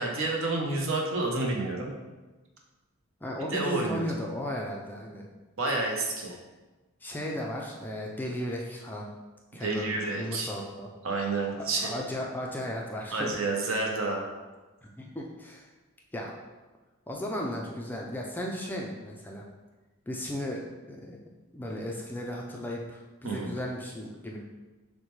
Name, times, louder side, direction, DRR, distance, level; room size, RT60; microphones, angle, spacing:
voice 1, 0.0-1.9 3.5-4.1 5.6-6.4 9.6-10.5 11.0-12.0 13.1-14.3 23.2-23.5, right 3 dB, 60° right, 0 dB, 0.7 m, -29 dB
voice 2, 3.2-5.3 7.0-9.1 9.5-10.9 11.6-13.3 15.0-15.7 16.1-16.3 17.1-19.5 20.1-21.2 21.5-24.4, left 1 dB, 10° left, -1 dB, 0.3 m, -35 dB
6.2 x 2.2 x 3.1 m, 1.2 s
head